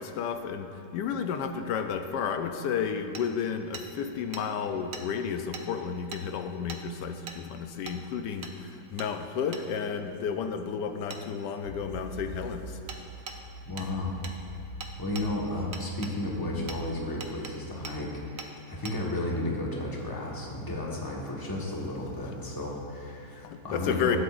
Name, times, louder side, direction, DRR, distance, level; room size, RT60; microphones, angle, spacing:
voice 1, 0.0-12.8 23.3-24.2, left 7 dB, 85° left, 7 dB, 1.2 m, -32 dB
Hammer, 3.2-3.3 3.7-3.9 4.3-4.4 4.9-5.1 5.5-5.7 6.1-6.2 6.7-6.8 7.3-7.4 7.9-8.0 8.4-8.6 9.0-9.1 9.5-9.7 11.1-11.2 12.9-13.0 13.3-13.4 13.8-13.9 14.2-14.4 14.8-15.3 15.7-16.2 16.7-16.8 17.2-17.5 17.9-18.0 18.4-18.5 18.9-19.0, right 4 dB, 55° right, 0.8 m, -40 dB
sound 1, 11.6-17.0, right 1 dB, 65° left, 0.4 m, -45 dB
voice 2, 13.7-14.1 15.0-24.2, left 1 dB, 15° left, -3 dB, 1.2 m, -33 dB
21.5 x 7.9 x 2.5 m, 2.7 s
omnidirectional pair, 1.8 m